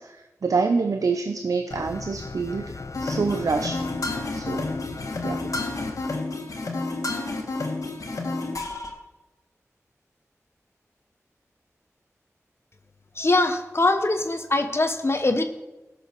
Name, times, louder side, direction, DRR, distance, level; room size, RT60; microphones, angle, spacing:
voice 1, 0.0-3.9 4.3-4.7 5.2-5.5, right 4 dB, 90° right, 6 dB, 0.6 m, -27 dB
sound 1, 1.7-6.1, left 3 dB, 65° left, 0.6 m, -38 dB
sound 2, 2.9-8.9, left 2 dB, 85° left, 1.8 m, -30 dB
voice 2, 13.2-15.4, left 2 dB, 50° left, 7 dB, 1.0 m, -22 dB
16.0 x 6.8 x 4.6 m, 1.1 s
wide cardioid pair, 55°, 6 cm